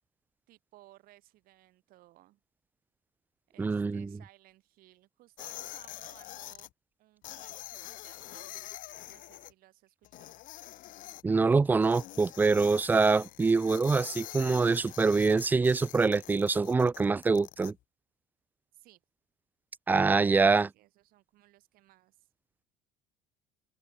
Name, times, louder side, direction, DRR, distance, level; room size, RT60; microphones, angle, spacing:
voice 1, 0.5-2.4 3.5-6.7 7.0-10.4 18.7-19.0 20.7-22.3, right 17 dB, 60° right, 6.3 m, -60 dB
voice 2, 3.6-4.1 11.2-17.7 19.9-20.7, right 4 dB, 10° right, 0.3 m, -25 dB
sound 1, 5.4-6.7 7.2-9.5 10.0-11.2 11.8-17.7, left 16 dB, 50° left, 0.9 m, -45 dB
open air
cardioid pair, 140°, 17 cm